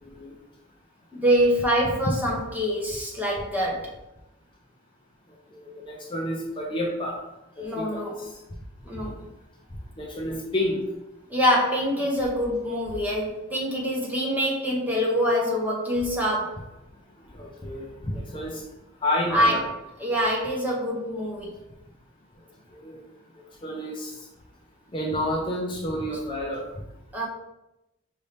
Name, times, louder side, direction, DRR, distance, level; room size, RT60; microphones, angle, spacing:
voice 1, 0.0-0.3 5.5-7.2 7.6-8.3 10.0-10.8 17.3-18.6 19.0-19.6 22.7-23.0 23.6-24.2 24.9-26.6, left 1 dB, 25° left, -1 dB, 0.5 m, -30 dB
voice 2, 1.1-3.9 7.6-8.3 8.8-9.2 11.3-16.6 19.3-19.7 20.0-21.6 27.1-27.3, equal, 10° right, -3 dB, 0.8 m, -25 dB
5.3 x 2.7 x 3.3 m, 0.92 s
head